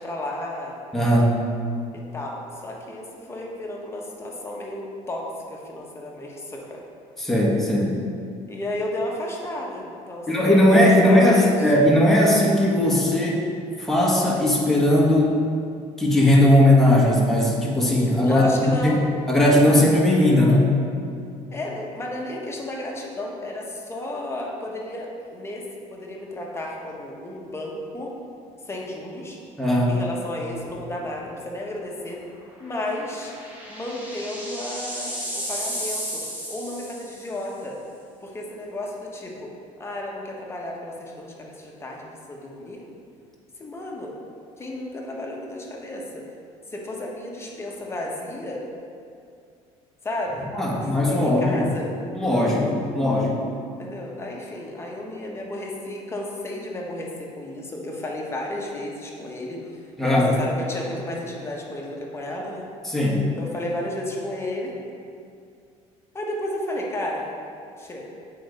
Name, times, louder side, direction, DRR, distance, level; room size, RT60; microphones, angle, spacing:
voice 1, 0.0-0.8 1.9-6.8 8.5-11.7 18.2-19.1 21.5-28.1 28.7-29.4 29.9-32.2 32.6-33.4 33.7-37.8 38.2-39.5 39.8-42.8 43.6-44.1 44.6-46.2 46.7-48.6 50.0-50.5 50.7-51.9 53.8-59.6 60.0-62.7 63.4-64.7 66.1-67.3 67.8-68.1, left 1 dB, 20° left, -2 dB, 1.3 m, -33 dB
voice 2, 0.9-1.3 7.2-8.0 10.3-13.4 13.8-15.4 16.0-19.0 19.3-20.8 29.6-30.0 50.5-51.7 52.1-53.4 60.0-60.3 62.8-63.3, left 1 dB, 5° left, -4 dB, 1.5 m, -18 dB
sound 1, 30.7-30.9 31.3-31.4 32.8-37.5, equal, 15° right, 1.6 m, -33 dB
7.6 x 4.7 x 5.2 m, 2.4 s
cardioid pair, 115°, 13 cm